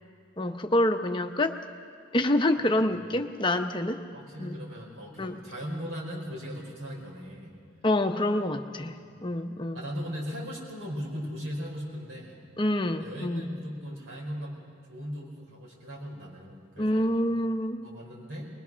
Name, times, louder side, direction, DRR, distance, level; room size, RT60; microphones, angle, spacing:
voice 1, 0.4-1.6 2.1-4.0 4.4-4.6 5.2-5.4 7.8-9.0 9.2-9.8 12.6-13.5 16.8-17.9, left 1 dB, 25° left, 6 dB, 0.8 m, -27 dB
voice 2, 4.1-7.5 9.0-9.2 9.7-12.4 13.0-14.6 14.9-17.1 17.8-18.5, equal, 90° right, -1 dB, 4.9 m, -38 dB
21.0 x 21.0 x 6.2 m, 2.2 s
head